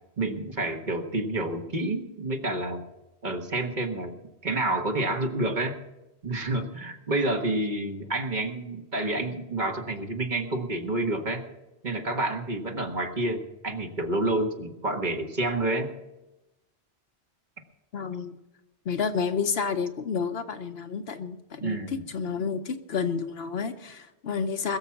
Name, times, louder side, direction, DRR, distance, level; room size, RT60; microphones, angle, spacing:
voice 1, 0.2-2.8 3.2-4.1 4.4-5.8 6.2-11.5 11.8-15.9 21.6-22.0, right 2 dB, 45° right, 4 dB, 1.5 m, -29 dB
voice 2, 17.9-18.3 18.8-24.8, left 5 dB, 65° left, 8 dB, 1.1 m, -30 dB
21.0 x 7.3 x 5.9 m, 0.99 s
omnidirectional pair, 1.1 m